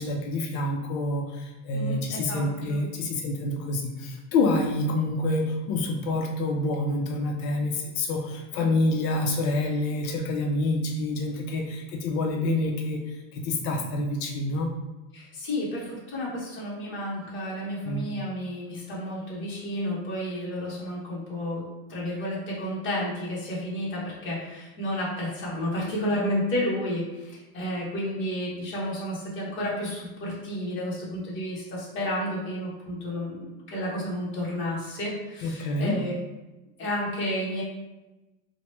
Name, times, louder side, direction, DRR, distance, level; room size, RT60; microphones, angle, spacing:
voice 1, 0.0-14.7 17.9-18.1 35.4-36.0, left 2 dB, 80° left, 2 dB, 0.6 m, -27 dB
voice 2, 1.7-2.8 15.1-21.6 21.9-36.1 36.8-37.6, left 1 dB, 30° left, -6 dB, 0.9 m, -31 dB
2.9 x 2.1 x 3.1 m, 1.1 s
cardioid pair, 160°, 40 cm